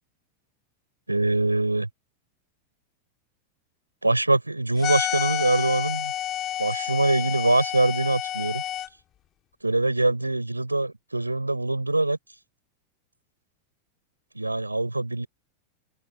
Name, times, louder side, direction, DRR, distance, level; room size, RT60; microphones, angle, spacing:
voice 1, 1.1-1.9 4.0-6.1 6.6-8.6 9.6-12.2 14.3-15.3, right 2 dB, 85° right, 5.5 m, -23 dB
sound 1, 4.8-8.9, left 12 dB, 35° left, 4.4 m, -29 dB
open air
figure-of-eight pair, 85°, 0 cm